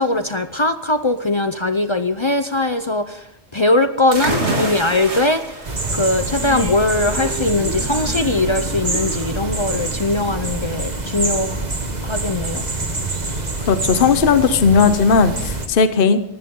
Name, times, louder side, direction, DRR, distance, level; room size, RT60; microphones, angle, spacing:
voice 1, 0.0-11.6 12.0-12.6, left 2 dB, 30° left, 10 dB, 0.6 m, -20 dB
sound 1, 4.1-11.6, right 2 dB, 80° right, 2.9 m, -29 dB
sound 2, 5.6-15.7, right 2 dB, 40° right, 1.7 m, -26 dB
sound 3, 6.2-11.5, left 1 dB, 10° right, 2.8 m, -35 dB
voice 2, 13.7-16.2, left 5 dB, 55° left, 11 dB, 1.1 m, -15 dB
19.0 x 15.0 x 3.8 m, 0.79 s
omnidirectional pair, 1.1 m